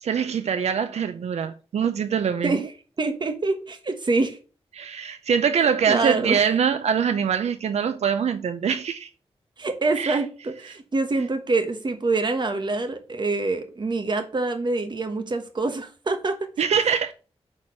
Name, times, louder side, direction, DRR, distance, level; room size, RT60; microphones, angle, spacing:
voice 1, 0.0-2.6 4.7-9.1 10.0-10.2 16.6-17.1, right 7 dB, 85° right, 0.5 m, -23 dB
voice 2, 3.0-4.4 5.9-6.4 9.6-16.5, right 3 dB, 45° right, 1.2 m, -25 dB
6.3 x 4.3 x 6.2 m
wide cardioid pair, 85°, 11 cm